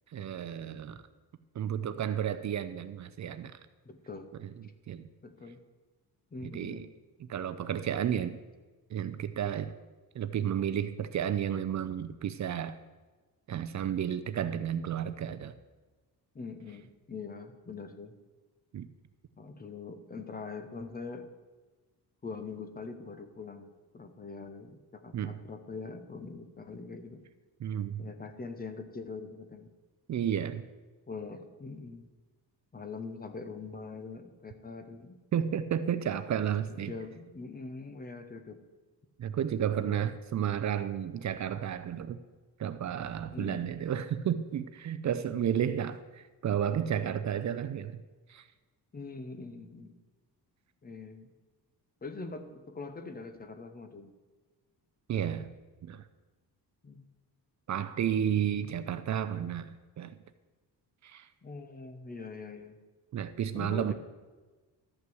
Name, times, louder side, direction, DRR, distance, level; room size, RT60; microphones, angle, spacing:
voice 1, 0.1-1.0 1.5-3.6 4.4-5.1 6.4-6.9 7.3-8.4 8.9-9.7 10.1-12.8 13.5-15.5 18.7-18.9 25.1-25.4 27.6-28.1 30.1-30.6 35.3-36.9 39.2-42.2 42.6-48.0 48.3-48.5 55.1-55.5 55.8-56.1 57.7-60.2 61.0-61.3 63.1-63.9, right 9 dB, 45° right, 12 dB, 0.5 m, -32 dB
voice 2, 3.8-4.3 5.2-5.6 6.3-6.9 16.3-18.2 19.4-21.3 22.2-27.2 28.0-29.7 31.1-32.0 32.7-35.2 36.7-38.6 39.7-40.0 43.3-43.7 45.3-45.5 48.9-49.9 50.8-51.3 52.0-54.1 56.8-57.0 61.4-62.8 63.5-63.9, left 4 dB, 20° left, 8 dB, 0.8 m, -43 dB
12.5 x 5.8 x 7.7 m, 1.3 s
wide cardioid pair, 175°, 41 cm